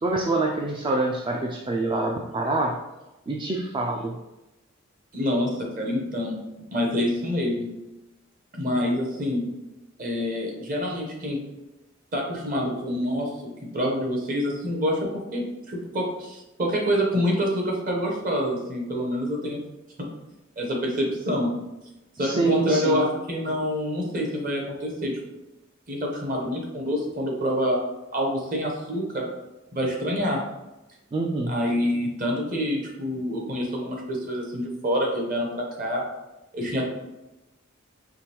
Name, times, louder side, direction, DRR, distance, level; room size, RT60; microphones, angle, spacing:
voice 1, 0.0-2.8 3.3-4.2 22.2-23.1 31.1-31.5, right 2 dB, 25° right, 0 dB, 0.3 m, -26 dB
voice 2, 5.1-6.4 6.7-7.7 8.5-9.4 10.0-11.4 12.1-13.3 13.7-19.6 20.6-21.5 22.2-25.1 25.9-27.8 28.1-29.2 29.7-30.4 31.5-36.0 36.5-36.9, equal, 45° right, 0 dB, 1.0 m, -26 dB
5.0 x 2.9 x 3.0 m, 0.99 s
head